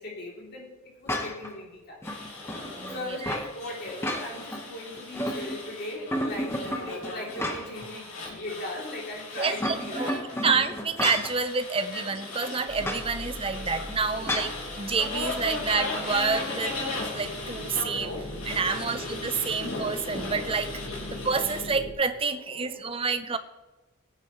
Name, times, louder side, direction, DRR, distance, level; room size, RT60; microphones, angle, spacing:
voice 1, 0.0-2.0 2.9-10.4 14.2-14.6 18.7-19.0 22.6-23.1, left 1 dB, 45° left, -2 dB, 3.0 m, -39 dB
sound 1, 1.1-1.5 2.0-3.5 3.9-4.6 4.9-5.7 6.1-7.9 8.3-8.4 9.4-11.4 12.8-13.1 14.3-14.6, left 1 dB, 10° left, 1.1 m, -32 dB
sound 2, 2.0-21.6, left 2 dB, 80° left, 4.1 m, -37 dB
voice 2, 2.8-3.4 9.4-14.5 14.8-16.7 17.1-18.1 18.5-20.7 21.1-23.4, right 5 dB, 25° right, 11 dB, 0.6 m, -28 dB
sound 3, 12.7-21.9, left 1 dB, 65° left, 2.3 m, -40 dB
18.0 x 9.5 x 3.1 m, 1.1 s
head